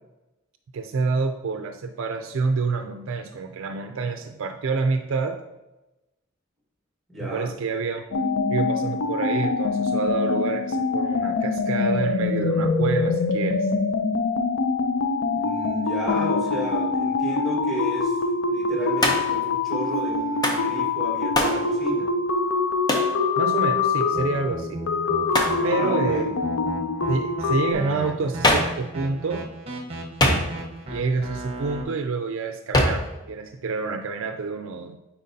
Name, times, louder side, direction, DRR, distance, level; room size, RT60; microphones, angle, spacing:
voice 1, 0.7-5.4 7.2-8.0 8.3-13.7 23.4-24.8 25.6-26.3 27.1-29.5 30.9-35.0, right 4 dB, 70° right, 6 dB, 0.4 m, -28 dB
voice 2, 7.1-7.5 15.3-22.1 25.6-26.3, equal, ahead, -3 dB, 1.4 m, -33 dB
sound 1, 8.1-27.7, left 4 dB, 80° left, 0.5 m, -24 dB
Hands, 19.0-19.4 20.4-20.7 21.3-21.6 22.9-23.1 25.3-25.6 28.4-28.8 30.2-30.8 32.7-33.1, left 1 dB, 20° left, 0.7 m, -22 dB
sound 2, 24.1-31.8, right 2 dB, 30° right, 1.0 m, -35 dB
9.0 x 4.5 x 2.7 m, 1.0 s
head